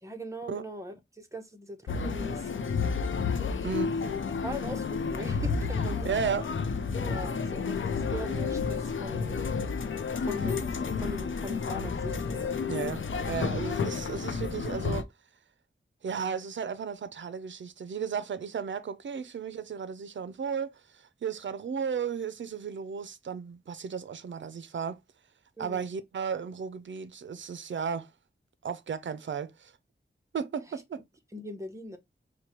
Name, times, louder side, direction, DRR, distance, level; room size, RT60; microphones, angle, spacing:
voice 1, 0.0-2.9 3.5-3.7 4.0-4.1 4.4-6.1 6.9-9.4 10.2-12.6 25.6-25.8 31.3-32.0, equal, 15° right, 0.8 m, -40 dB
sound 1, 1.9-15.0, left 5 dB, 85° left, 0.5 m, -31 dB
voice 2, 3.6-4.0 6.0-6.5 12.7-15.1 16.0-25.0 25.6-28.1 28.6-29.7 30.3-31.0, right 6 dB, 75° right, 0.4 m, -34 dB
4.5 x 2.2 x 2.9 m
wide cardioid pair, 90°, 20 cm